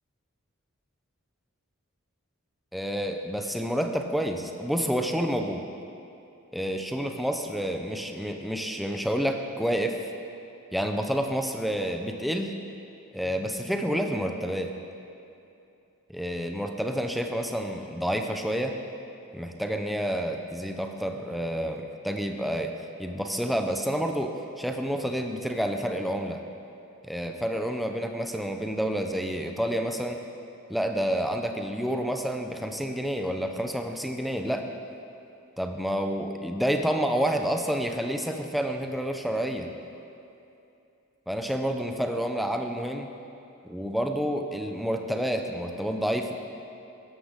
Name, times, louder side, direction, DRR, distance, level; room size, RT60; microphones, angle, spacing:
voice 1, 2.7-5.6 6.5-10.0 10.7-12.5 13.1-14.7 16.1-18.8 19.3-22.7 23.0-26.4 27.0-30.2 30.7-34.6 35.6-39.7 41.3-43.1 43.7-46.3, equal, ahead, 4 dB, 0.6 m, -29 dB
13.5 x 11.5 x 3.7 m, 2.7 s
head